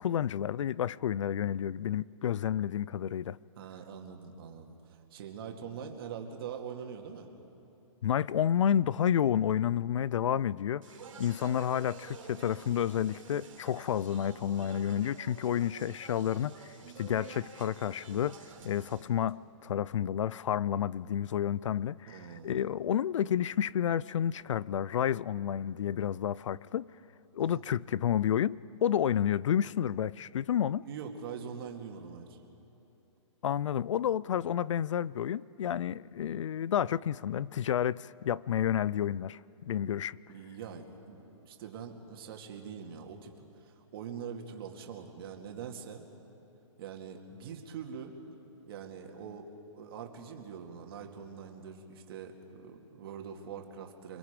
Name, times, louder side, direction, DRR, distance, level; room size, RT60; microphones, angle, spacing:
voice 1, 0.0-3.4 8.0-10.9 11.2-16.6 17.0-26.9 27.3-30.9 33.4-39.4 39.7-40.2, left 9 dB, 70° left, 0.4 m, -30 dB
voice 2, 3.6-7.3 22.0-22.6 27.4-27.6 30.8-32.4 40.3-46.0 46.8-48.2 48.7-54.2, right 7 dB, 45° right, 2.3 m, -43 dB
Speech, 10.8-19.0, right 4 dB, 85° right, 3.8 m, -50 dB
29.0 x 21.5 x 5.2 m
hypercardioid pair, 155°, 16 cm